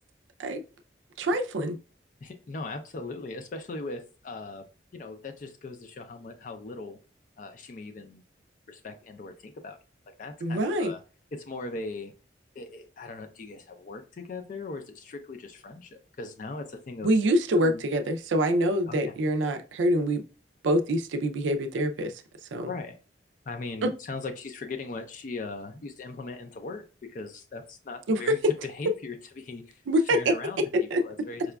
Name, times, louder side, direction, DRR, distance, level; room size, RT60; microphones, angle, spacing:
voice 1, 1.2-1.8 10.4-10.9 17.0-20.2 20.6-22.2 22.5-22.7 23.8-23.9 28.1-28.4 29.9-31.0, right 1 dB, 90° right, 0.4 m, -25 dB
voice 2, 2.2-4.6 4.9-7.0 7.4-8.2 8.7-9.8 10.2-11.0 11.3-12.1 12.6-17.1 17.6-17.8 18.9-19.1 22.7-23.0 23.5-26.8 27.1-28.4 28.6-29.8 30.1-30.6 31.0-31.4, left 3 dB, 45° left, 0.4 m, -39 dB
4.8 x 2.3 x 2.2 m
head